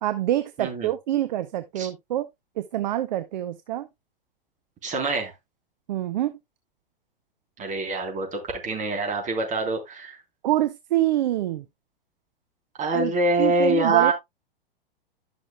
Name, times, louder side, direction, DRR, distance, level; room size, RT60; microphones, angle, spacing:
voice 1, 0.0-2.3 2.6-3.9 5.9-6.4 10.4-11.6 12.9-13.1 13.4-14.1, right 13 dB, 50° right, 0.7 m, -26 dB
voice 2, 0.6-0.9 1.8-1.9 4.8-5.3 7.6-10.2 12.8-14.1, right 2 dB, 25° right, 3.6 m, -25 dB
12.0 x 6.3 x 2.3 m
figure-of-eight pair, 105°, 29 cm